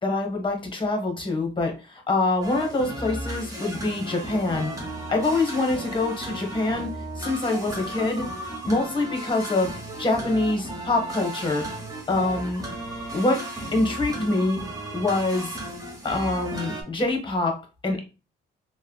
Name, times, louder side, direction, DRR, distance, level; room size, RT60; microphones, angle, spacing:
voice 1, 0.0-4.7 5.1-8.3 8.6-9.7 10.0-11.6 12.1-12.6 13.1-13.4 13.7-14.6 14.9-15.5 16.0-18.0, left 2 dB, 25° left, 3 dB, 1.0 m, -25 dB
sound 1, 2.4-16.8, right 1 dB, 15° right, 0.8 m, -35 dB
3.3 x 2.1 x 2.2 m, 0.30 s
cardioid pair, 90°, 20 cm